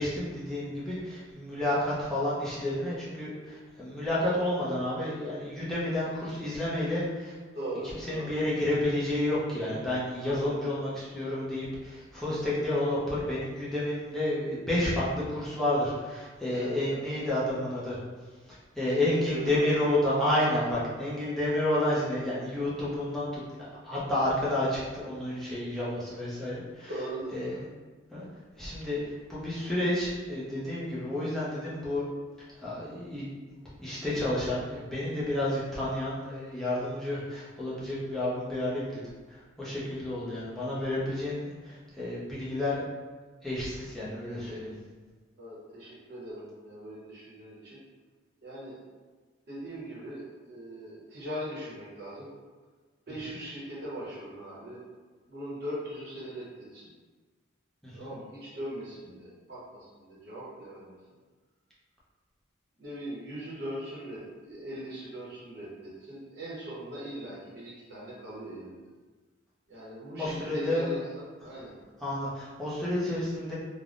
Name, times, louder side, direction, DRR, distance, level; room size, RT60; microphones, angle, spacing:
voice 1, 0.0-7.4 8.1-18.0 18.5-26.9 27.3-27.6 28.1-28.2 28.6-32.0 32.6-39.0 39.3-42.8 43.4-44.7 57.8-58.1 70.2-70.9 72.0-73.5, left 1 dB, ahead, -9 dB, 0.6 m, -30 dB
voice 2, 7.5-8.3 10.2-10.8 16.5-17.0 18.8-19.6 20.4-20.7 26.8-27.6 44.2-44.4 45.4-47.8 48.4-48.8 49.5-52.3 53.1-54.8 55.3-56.9 57.9-61.0 62.8-68.8 69.7-71.7, right 1 dB, 50° right, -7 dB, 0.9 m, -40 dB
3.3 x 2.2 x 2.5 m, 1.4 s
head